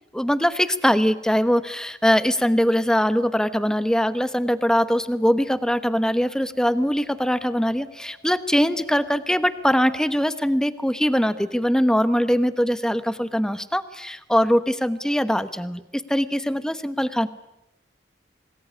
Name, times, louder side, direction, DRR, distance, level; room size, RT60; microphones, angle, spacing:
voice 1, 0.1-17.3, equal, 5° left, 12 dB, 1.0 m, -22 dB
Wind, 2.4-10.3, right 1 dB, 85° right, 2.6 m, -50 dB
26.5 x 20.0 x 9.8 m, 0.91 s
head